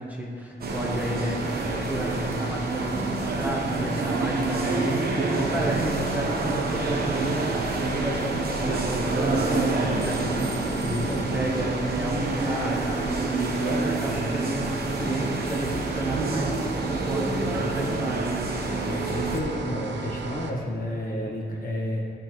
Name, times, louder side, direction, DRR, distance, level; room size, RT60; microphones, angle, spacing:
voice 1, 0.0-1.4 1.7-10.8 11.1-18.4, right 1 dB, 10° right, -3 dB, 0.8 m, -32 dB
sound 1, 0.6-19.4, right 2 dB, 60° right, 0.9 m, -28 dB
sound 2, 0.7-20.5, right 4 dB, 85° right, 0.6 m, -35 dB
voice 2, 10.9-11.2 18.8-22.0, left 1 dB, 50° left, -2 dB, 1.4 m, -31 dB
11.5 x 5.2 x 3.1 m, 2.6 s
wide cardioid pair, 155°, 18 cm